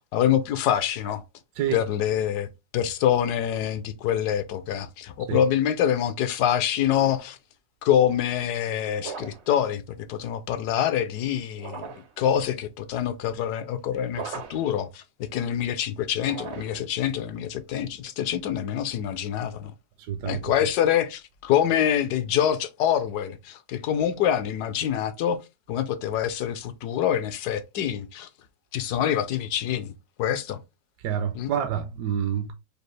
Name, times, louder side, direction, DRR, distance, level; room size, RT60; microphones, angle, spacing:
voice 1, 0.1-1.2 1.7-7.4 7.8-19.7 20.3-25.4 25.7-28.3 28.7-29.9 30.2-30.6 31.3-31.5, left 10 dB, 75° left, 1.0 m, -25 dB
sound 1, 9.0-9.5 11.5-12.2 14.1-14.7 16.2-16.9, right 7 dB, 60° right, 0.7 m, -38 dB
voice 2, 20.0-20.5 31.0-32.5, right 9 dB, 75° right, 1.1 m, -28 dB
5.2 x 2.4 x 3.1 m
omnidirectional pair, 1.9 m